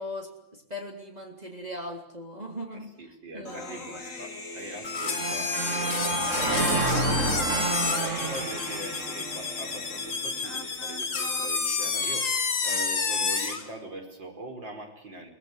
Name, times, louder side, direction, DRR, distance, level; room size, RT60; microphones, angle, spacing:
voice 1, 0.0-2.9 3.3-3.8, left 1 dB, 20° right, 1 dB, 3.5 m, -39 dB
voice 2, 2.7-15.3, right 1 dB, 80° right, 4 dB, 5.6 m, -41 dB
Human voice, 3.5-11.5, left 3 dB, 45° left, 2.9 m, -41 dB
sound 1, 4.8-13.7, left 5 dB, 85° left, 3.3 m, -30 dB
sound 2, 5.0-10.1, right 3 dB, 40° right, 2.3 m, -29 dB
24.0 x 19.5 x 9.6 m, 0.78 s
omnidirectional pair, 2.0 m